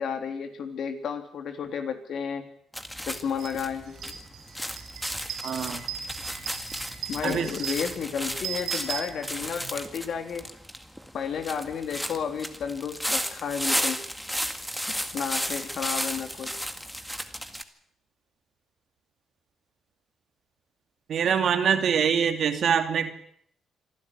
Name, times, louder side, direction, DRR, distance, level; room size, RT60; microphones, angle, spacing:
voice 1, 0.0-2.5 3.0-4.1 7.1-10.4 11.1-14.0 14.9-16.5, left 7 dB, 65° left, 6 dB, 3.5 m, -32 dB
sound 1, 2.7-17.6, equal, ahead, 2.0 m, -34 dB
sound 2, 3.4-3.5 3.9-9.7, right 7 dB, 85° right, 5.1 m, -38 dB
voice 2, 5.4-5.8 7.2-7.5 21.1-23.1, right 7 dB, 60° right, 7 dB, 2.8 m, -24 dB
26.0 x 12.0 x 9.9 m, 0.67 s
cardioid pair, 90°, 0 cm